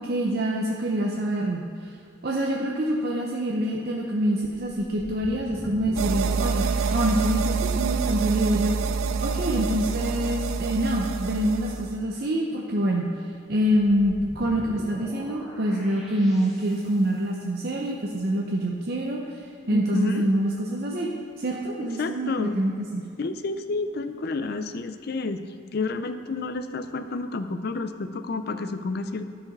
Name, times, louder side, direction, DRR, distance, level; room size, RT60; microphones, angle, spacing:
voice 1, 0.0-1.6 2.2-8.8 9.2-13.1 13.5-21.1 21.4-23.0, right 1 dB, 50° right, -2 dB, 0.7 m, -26 dB
sound 1, 4.7-7.8 9.4-10.3 13.7-17.2, equal, ahead, 1.3 m, -44 dB
sound 2, 6.0-12.0, right 5 dB, 85° right, 0.3 m, -27 dB
voice 2, 19.7-20.3 21.8-22.6 23.2-25.4 25.7-29.3, left 3 dB, 50° left, 10 dB, 0.5 m, -30 dB
12.0 x 4.9 x 5.3 m, 2.3 s
head